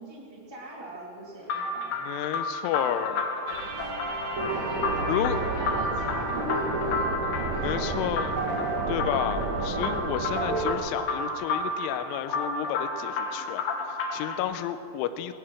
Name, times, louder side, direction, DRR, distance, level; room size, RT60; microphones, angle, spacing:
voice 1, 0.0-1.9 4.5-8.2, right 1 dB, 30° right, -4 dB, 0.4 m, -40 dB
sound 1, 1.5-14.4, left 3 dB, 60° left, 2.7 m, -32 dB
voice 2, 2.0-3.3 5.1-5.4 7.6-8.4 8.9-15.3, left 10 dB, 90° left, 10 dB, 3.1 m, -31 dB
sound 2, 3.5-10.7, right 3 dB, 60° right, 1.9 m, -30 dB
19.5 x 11.5 x 6.2 m, 2.8 s
omnidirectional pair, 5.6 m